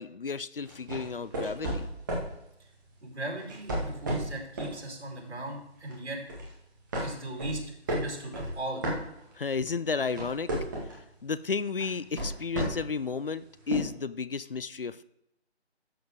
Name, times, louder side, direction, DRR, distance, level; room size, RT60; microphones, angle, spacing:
voice 1, 0.0-1.9 9.4-10.5 11.2-15.0, left 5 dB, 55° left, 16 dB, 0.5 m, -32 dB
sound 1, 0.7-2.3 3.4-4.8 5.2-5.4 5.9-6.5 6.9-9.5 9.9-11.0 11.8-13.0 13.7-13.8, right 1 dB, 20° right, 1.9 m, -33 dB
voice 2, 3.0-6.2 7.0-7.6 7.9-8.8, right 1 dB, 70° right, 0 dB, 5.0 m, -37 dB
12.5 x 7.1 x 4.7 m, 0.80 s
figure-of-eight pair, 165°, 34 cm